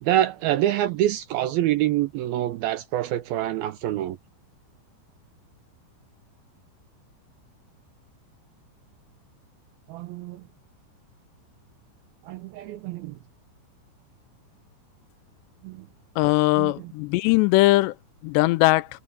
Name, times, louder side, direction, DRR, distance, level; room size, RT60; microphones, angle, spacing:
voice 1, 0.0-4.2 9.9-10.4 12.3-13.1 15.6-15.9 16.6-16.9, right 13 dB, 85° right, 2.1 m, -26 dB
voice 2, 16.2-17.9 18.2-18.9, left 20 dB, 80° left, 2.6 m, -20 dB
omnidirectional pair, 5.3 m